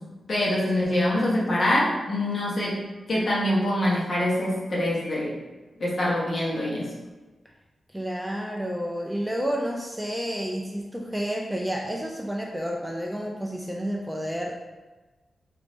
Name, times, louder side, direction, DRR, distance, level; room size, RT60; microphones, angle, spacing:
voice 1, 0.3-2.8 3.1-5.3 5.8-6.8, left 1 dB, 45° left, -5 dB, 1.1 m, -24 dB
voice 2, 7.9-14.5, equal, 5° right, 0 dB, 0.4 m, -30 dB
4.8 x 2.6 x 3.1 m, 1.2 s
wide cardioid pair, 115°, 0 cm